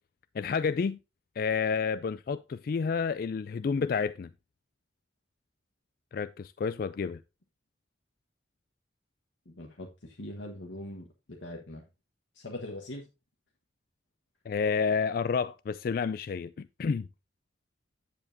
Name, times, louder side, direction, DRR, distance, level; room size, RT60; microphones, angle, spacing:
voice 1, 0.3-1.0 1.4-4.3 6.1-7.2 14.5-17.1, left 5 dB, 50° left, 0.3 m, -30 dB
voice 2, 9.5-11.8 12.3-13.0, left 1 dB, 80° left, 1.4 m, -42 dB
9.9 x 7.2 x 2.7 m
head